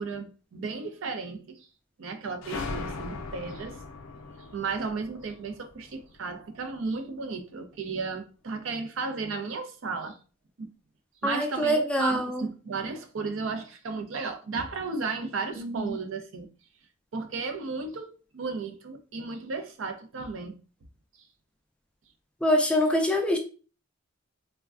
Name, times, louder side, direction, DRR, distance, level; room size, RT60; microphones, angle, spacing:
voice 1, 0.0-1.7 2.0-3.8 4.5-10.2 10.6-10.7 11.2-16.5 17.1-20.5, right 4 dB, 70° right, 0.5 m, -34 dB
sound 1, 2.4-6.9, left 3 dB, 85° left, 0.4 m, -39 dB
voice 2, 11.2-12.5 15.5-15.9 22.4-23.4, equal, 5° left, 0.3 m, -25 dB
3.3 x 2.1 x 2.4 m
head